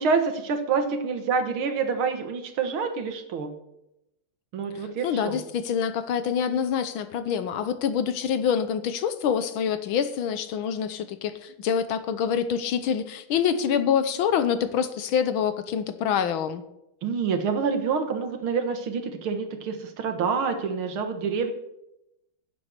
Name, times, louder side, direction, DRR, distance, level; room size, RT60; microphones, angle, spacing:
voice 1, 0.0-3.5 4.5-5.4 17.0-21.5, right 5 dB, 75° right, 7 dB, 2.2 m, -27 dB
voice 2, 5.0-16.6, left 8 dB, 75° left, 11 dB, 1.6 m, -26 dB
11.0 x 7.7 x 6.6 m, 0.85 s
omnidirectional pair, 2.4 m